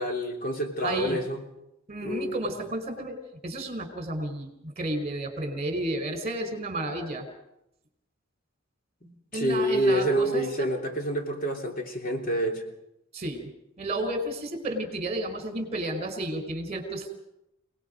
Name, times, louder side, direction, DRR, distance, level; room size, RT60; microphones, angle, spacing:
voice 1, 0.0-1.4 2.0-2.4 9.0-12.6, right 1 dB, 45° left, 2 dB, 3.4 m, -27 dB
voice 2, 0.8-1.2 1.9-7.2 9.3-10.7 13.1-13.5 13.8-17.1, right 1 dB, 30° right, 7 dB, 4.5 m, -32 dB
29.0 x 19.0 x 5.3 m, 0.83 s
head